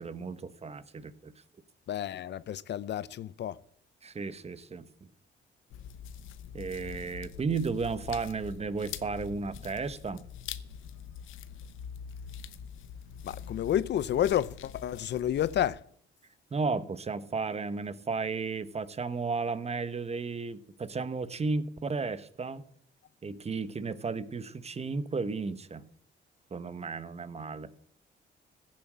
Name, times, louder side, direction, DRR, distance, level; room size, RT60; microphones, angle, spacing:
voice 1, 0.0-1.3 4.0-4.9 6.5-10.2 16.5-22.6 23.2-25.8 26.5-27.7, right 4 dB, 30° right, 1.1 m, -34 dB
voice 2, 1.9-3.6 13.2-15.8, left 11 dB, 60° left, 0.6 m, -30 dB
sound 1, 5.7-15.7, left 8 dB, 90° left, 1.0 m, -44 dB
15.5 x 7.6 x 7.5 m
cardioid pair, 90°, 20 cm